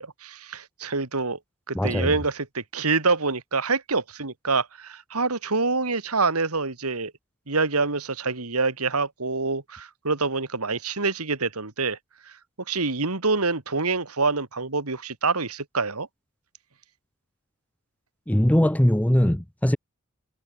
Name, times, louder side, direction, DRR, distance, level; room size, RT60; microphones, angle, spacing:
voice 1, 0.0-1.4 1.7-7.1 7.5-12.0 12.7-16.1, right 4 dB, 90° right, 2.5 m, -26 dB
voice 2, 1.7-2.2 18.3-19.8, equal, 5° left, 0.8 m, -21 dB
head